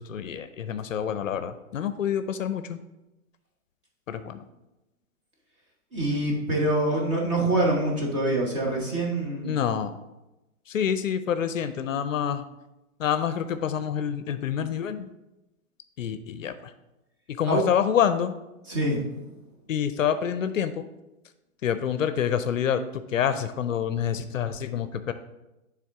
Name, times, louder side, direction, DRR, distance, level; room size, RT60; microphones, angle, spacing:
voice 1, 0.0-2.8 4.1-4.4 9.4-10.0 10.7-12.4 13.0-15.1 16.0-16.7 17.3-18.3 19.7-20.8 21.6-25.1, left 8 dB, 65° left, 11 dB, 0.5 m, -27 dB
voice 2, 5.9-9.5 17.5-17.6 18.7-19.3, right 1 dB, 20° right, -2 dB, 1.0 m, -25 dB
9.2 x 3.6 x 3.5 m, 0.99 s
hypercardioid pair, 165°, 43 cm